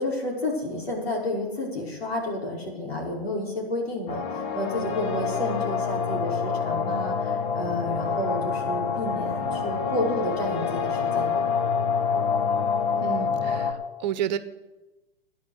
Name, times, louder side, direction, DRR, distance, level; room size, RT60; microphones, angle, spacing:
voice 1, 0.0-11.4, left 1 dB, 80° left, 0 dB, 5.7 m, -31 dB
sound 1, 4.1-13.7, left 6 dB, 35° left, 2.1 m, -27 dB
voice 2, 13.0-14.4, right 10 dB, 45° right, 13 dB, 1.2 m, -30 dB
14.0 x 10.5 x 8.5 m, 1.1 s
hypercardioid pair, 125°, 30 cm